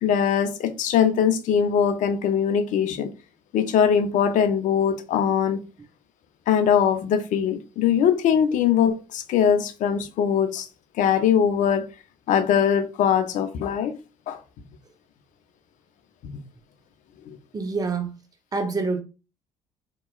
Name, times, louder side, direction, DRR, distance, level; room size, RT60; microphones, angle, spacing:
voice 1, 0.0-3.1 3.5-5.6 6.5-10.7 11.0-11.9 12.3-14.0 14.3-14.4 16.2-16.3 17.3-17.4, left 8 dB, 55° left, 0.5 m, -21 dB
voice 2, 17.5-18.1 18.5-19.0, right 4 dB, 25° right, 0.7 m, -26 dB
2.8 x 2.2 x 2.3 m
hypercardioid pair, 60°, 15 cm